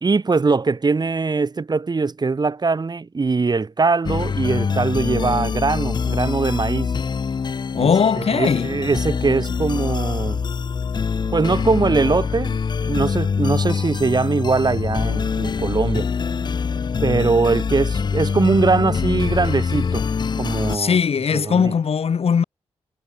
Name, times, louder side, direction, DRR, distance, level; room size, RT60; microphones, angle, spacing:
voice 1, 0.0-6.9 7.8-10.4 11.3-16.1 17.0-20.0 20.4-21.0 21.3-21.7, right 4 dB, 40° right, 2.3 m, -21 dB
sound 1, 4.0-20.8, left 5 dB, 45° left, 0.5 m, -24 dB
voice 2, 7.8-8.7 20.7-22.4, left 6 dB, 70° left, 3.1 m, -19 dB
cardioid pair, 80°, 11 cm